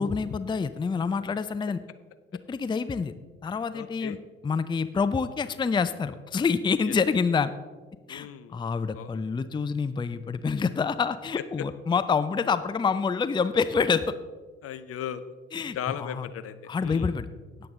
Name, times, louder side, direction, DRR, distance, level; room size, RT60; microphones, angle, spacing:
voice 1, 0.0-1.8 2.5-3.1 3.4-4.2 4.4-7.5 8.1-14.2 15.5-16.3 16.7-17.3, left 5 dB, 15° left, 13 dB, 0.5 m, -27 dB
voice 2, 3.7-4.2 6.8-7.0 8.1-8.6 8.9-9.2 14.6-15.3 15.7-17.1, left 9 dB, 50° left, 12 dB, 0.7 m, -37 dB
18.0 x 7.8 x 3.7 m, 1.4 s
figure-of-eight pair, 50°, 30 cm